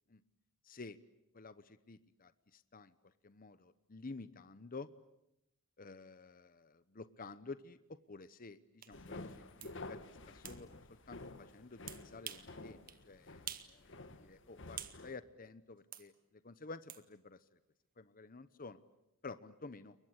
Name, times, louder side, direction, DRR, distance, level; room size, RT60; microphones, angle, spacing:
voice 1, 0.6-1.0 1.3-4.9 5.8-10.0 10.3-10.7 11.1-17.6 18.0-18.8 19.2-20.0, left 3 dB, 45° left, 14 dB, 1.0 m, -51 dB
sound 1, 8.8-8.9 9.6-9.7 10.5-10.6 11.9-12.5 12.9-13.0 13.5-13.7 14.1-15.0 15.9-16.1 16.9-17.0, right 10 dB, 45° right, 1.6 m, -47 dB
sound 2, 8.9-15.2, left 2 dB, 65° left, 1.9 m, -51 dB
29.0 x 23.0 x 8.1 m, 0.84 s
head